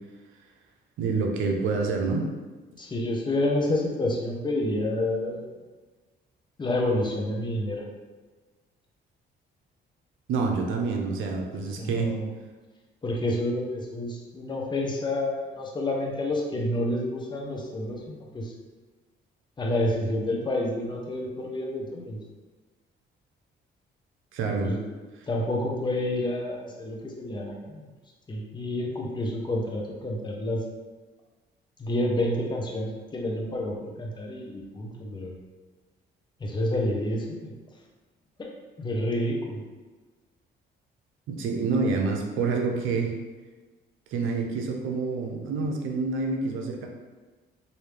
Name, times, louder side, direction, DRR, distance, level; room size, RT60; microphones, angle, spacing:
voice 1, 1.0-2.3 10.3-12.1 24.3-24.7 41.3-43.1 44.1-46.9, right 4 dB, 85° right, 1 dB, 0.6 m, -27 dB
voice 2, 2.8-5.5 6.6-7.8 11.5-12.3 13.0-18.5 19.6-22.2 24.6-24.9 25.3-27.8 28.3-30.6 31.8-35.3 36.4-37.5 38.4-38.5 38.8-39.6, left 1 dB, 20° left, -1 dB, 0.6 m, -29 dB
3.2 x 2.6 x 3.2 m, 1.3 s
cardioid pair, 90°, 20 cm